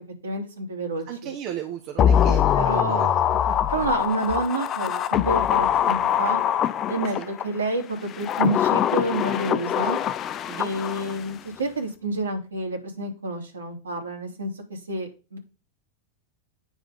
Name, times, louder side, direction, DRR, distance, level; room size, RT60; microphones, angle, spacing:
voice 1, 0.2-1.3 2.5-3.2 3.7-6.4 6.9-10.0 10.6-15.4, right 2 dB, 70° right, 1 dB, 3.1 m, -29 dB
voice 2, 1.1-3.1 3.5-3.6 7.1-7.3 10.5-10.8, right 9 dB, 40° right, 4 dB, 1.3 m, -35 dB
sound 1, 2.0-7.4 8.1-11.3 11.6-11.7, left 9 dB, 30° left, 0.7 m, -23 dB
9.4 x 4.9 x 5.3 m, 0.31 s
figure-of-eight pair, 90°, 0 cm